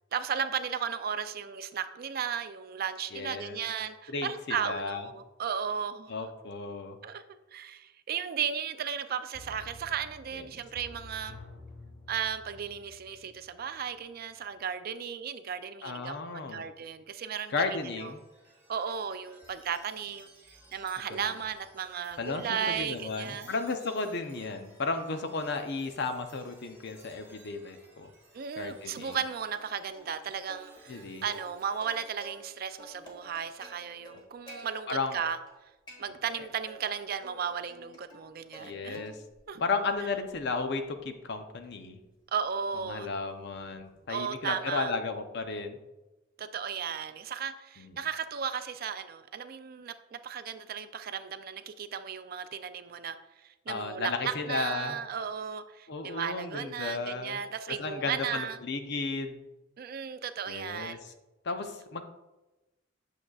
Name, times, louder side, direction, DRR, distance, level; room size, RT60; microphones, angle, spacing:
voice 1, 0.1-6.2 7.0-7.2 7.5-11.4 12.1-18.1 18.7-20.3 20.7-23.6 28.3-35.4 36.0-39.0 39.5-39.6 42.3-43.1 44.1-44.9 46.4-58.6 59.8-61.0, right 7 dB, 50° right, 11 dB, 0.4 m, -35 dB
voice 2, 3.1-3.6 4.1-5.1 6.1-7.0 10.3-10.4 15.8-16.6 17.5-18.2 21.1-21.2 22.2-28.1 28.6-29.2 30.9-31.3 34.9-35.2 38.6-39.2 39.6-42.0 42.9-45.8 47.8-47.9 53.7-55.0 55.9-57.4 57.8-59.4 60.5-61.1 61.4-62.0, left 4 dB, 60° left, 7 dB, 0.6 m, -34 dB
sound 1, 9.3-14.0 14.4-14.5, left 2 dB, 80° left, 1.0 m, -50 dB
Chime, 17.4-33.3, right 2 dB, 10° right, 2.1 m, -59 dB
Plucked string instrument, 29.0-29.7 29.9-30.1 30.5-32.5 32.8-34.6 35.0-35.6 35.9-36.9 37.2-38.7 38.9-39.4 39.9-44.1, right 1 dB, 25° left, 1.4 m, -52 dB
8.7 x 6.5 x 2.4 m, 1.1 s
head